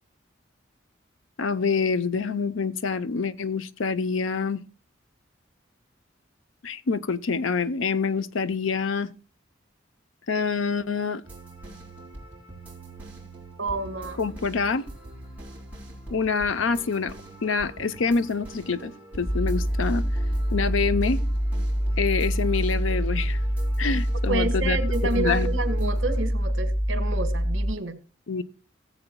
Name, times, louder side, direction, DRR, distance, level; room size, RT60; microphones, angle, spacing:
voice 1, 1.4-4.6 6.6-9.1 10.3-11.2 14.2-14.8 16.1-17.1 17.4-18.9 19.2-20.0 20.5-21.2 22.0-23.4 23.8-24.8 25.1-25.5 28.3-28.4, left 5 dB, 85° left, 0.6 m, -26 dB
sound 1, 11.2-26.2, right 2 dB, 10° right, 4.1 m, -43 dB
voice 2, 13.6-14.2 24.3-28.0, right 3 dB, 70° right, 1.5 m, -29 dB
sound 2, 19.3-27.7, equal, 15° left, 0.5 m, -25 dB
17.5 x 7.9 x 2.2 m
head